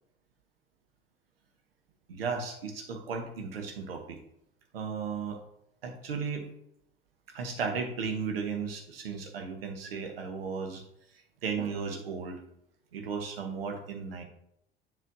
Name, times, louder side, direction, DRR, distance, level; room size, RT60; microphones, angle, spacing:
voice 1, 2.1-4.2 4.7-5.4 5.8-6.5 7.3-10.8 11.4-12.4 12.9-14.2, right 5 dB, 75° right, 4 dB, 1.0 m, -35 dB
7.5 x 5.4 x 2.7 m, 0.78 s
figure-of-eight pair, 65°, 30 cm